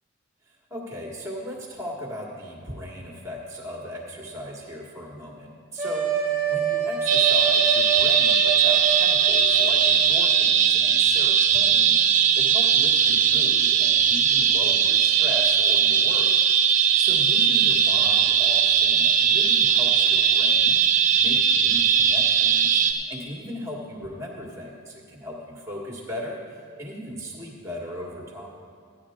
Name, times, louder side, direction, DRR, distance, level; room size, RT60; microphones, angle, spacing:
voice 1, 0.5-16.4 16.7-20.8 21.1-26.4 26.8-28.5, equal, 15° right, -1 dB, 1.7 m, -37 dB
sound 1, 5.8-10.2, right 5 dB, 10° left, 1.8 m, -27 dB
sound 2, 7.1-22.9, right 8 dB, 35° right, 0.6 m, -19 dB
14.5 x 9.9 x 3.7 m, 2.1 s
head